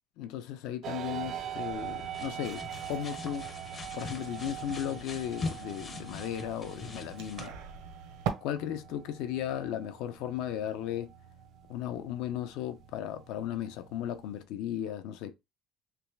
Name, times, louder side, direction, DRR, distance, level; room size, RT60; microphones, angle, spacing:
voice 1, 0.2-2.6 2.9-3.5 3.9-7.5 8.4-11.1 11.7-15.3, left 11 dB, 80° left, 0.6 m, -36 dB
sound 1, 0.8-14.4, right 10 dB, 45° right, 0.4 m, -44 dB
sound 2, 1.0-7.5, left 3 dB, 25° left, 0.6 m, -43 dB
sound 3, 1.7-8.3, right 8 dB, 90° right, 1.0 m, -43 dB
3.3 x 3.1 x 3.3 m
cardioid pair, 175°, 0 cm